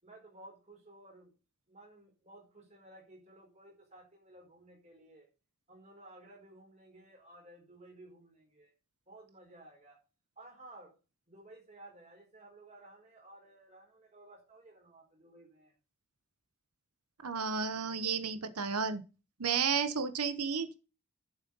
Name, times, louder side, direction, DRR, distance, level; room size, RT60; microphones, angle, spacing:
voice 1, 0.0-1.3 1.7-5.3 5.7-8.7 9.1-10.0 10.4-10.9 11.3-15.7, right 1 dB, 30° right, 0 dB, 4.7 m, -55 dB
voice 2, 17.2-19.0 19.4-20.8, right 6 dB, 85° right, 10 dB, 1.0 m, -32 dB
9.1 x 7.5 x 5.5 m, 0.32 s
head